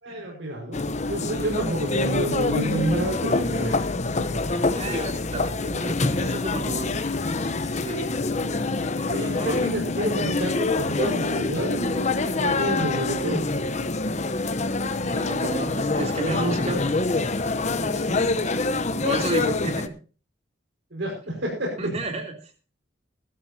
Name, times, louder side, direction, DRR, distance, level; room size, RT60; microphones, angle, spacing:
voice 1, 0.0-3.8 4.1-4.9 9.1-13.4 17.8-18.3 20.9-21.9, right 1 dB, 70° right, -2 dB, 5.2 m, -29 dB
sound 1, 0.7-19.9, left 3 dB, 35° left, 0.9 m, -26 dB
voice 2, 4.5-6.9 7.8-8.2 9.0-9.6 15.0-16.8 17.9-18.1 18.9-19.9 21.8-22.3, right 2 dB, 35° right, 4 dB, 3.1 m, -32 dB
19.5 x 12.0 x 2.8 m, 0.36 s
head